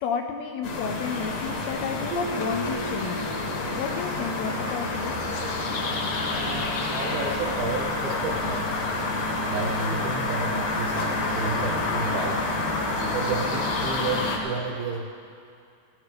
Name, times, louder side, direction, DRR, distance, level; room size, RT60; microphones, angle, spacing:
voice 1, 0.0-3.3 3.8-5.2, left 7 dB, 80° left, 4 dB, 2.4 m, -31 dB
sound 1, 0.6-14.4, left 2 dB, 55° left, 2.1 m, -28 dB
Keyboard (musical), 2.1-4.9, right 4 dB, 90° right, 2.9 m, -37 dB
voice 2, 6.3-8.7 9.5-12.5 13.1-15.1, right 4 dB, 70° right, 1 dB, 2.4 m, -32 dB
17.0 x 15.5 x 3.3 m, 2.4 s
omnidirectional pair, 4.9 m